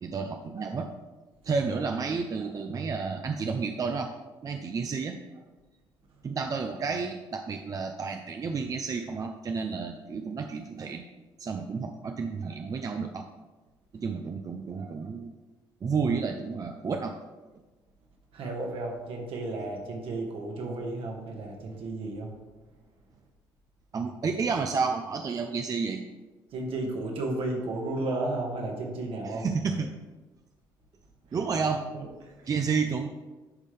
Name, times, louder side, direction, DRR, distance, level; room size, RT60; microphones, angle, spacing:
voice 1, 0.0-0.9 1.4-4.1 4.4-5.4 6.2-11.0 11.4-13.2 13.9-15.3 15.8-17.2 23.9-26.0 29.2-29.9 31.3-31.8 32.5-33.1, right 5 dB, 40° right, 5 dB, 0.5 m, -31 dB
voice 2, 18.3-22.3 26.5-29.5 31.9-32.0 32.4-32.5, right 2 dB, 70° right, 1 dB, 1.6 m, -33 dB
10.5 x 3.7 x 3.3 m, 1.2 s
supercardioid pair, 65°, 10 cm